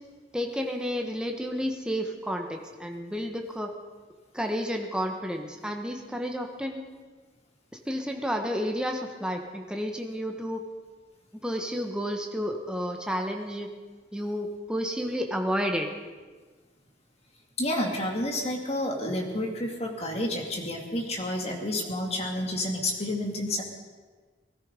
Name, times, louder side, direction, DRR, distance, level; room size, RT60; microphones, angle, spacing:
voice 1, 0.3-3.7 4.3-6.8 7.9-10.6 11.4-13.7 14.1-15.9, equal, 5° right, 3 dB, 1.4 m, -31 dB
voice 2, 17.6-23.6, left 1 dB, 35° left, 1 dB, 2.4 m, -30 dB
19.5 x 13.5 x 5.3 m, 1.4 s
head